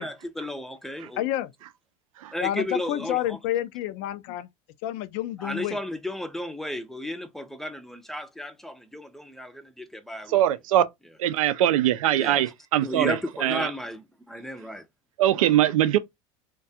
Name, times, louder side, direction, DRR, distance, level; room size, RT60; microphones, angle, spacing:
voice 1, 0.0-1.2 2.3-3.4 5.4-10.4 12.2-12.4 12.8-14.8, left 1 dB, ahead, 0.4 m, -34 dB
voice 2, 1.2-1.5 2.4-4.5 4.8-5.8, left 13 dB, 60° left, 0.4 m, -29 dB
voice 3, 10.3-10.8 11.2-13.7 15.2-16.0, right 12 dB, 90° right, 0.4 m, -22 dB
2.3 x 2.2 x 2.6 m
supercardioid pair, 100°, 17 cm